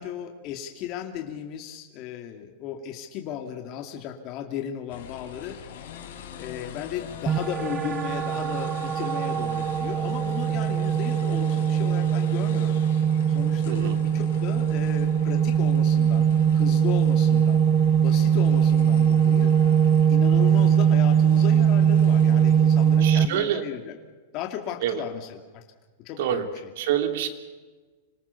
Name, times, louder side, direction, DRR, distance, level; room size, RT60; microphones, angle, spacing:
voice 1, 0.0-5.6 6.4-12.8 13.3-16.3 16.5-17.7 17.9-19.5 20.1-24.0 24.3-25.6 26.0-26.5, left 9 dB, 35° left, 4 dB, 2.4 m, -35 dB
sound 1, 4.9-23.2, left 8 dB, 80° left, 4.8 m, -43 dB
sound 2, 7.3-23.3, right 8 dB, 20° right, 0.8 m, -21 dB
voice 2, 13.7-14.0 23.0-23.6 24.8-25.0 26.2-26.5 26.8-27.3, right 10 dB, 60° right, 7 dB, 2.9 m, -26 dB
27.0 x 18.5 x 7.1 m, 1.3 s
supercardioid pair, 155°, 0 cm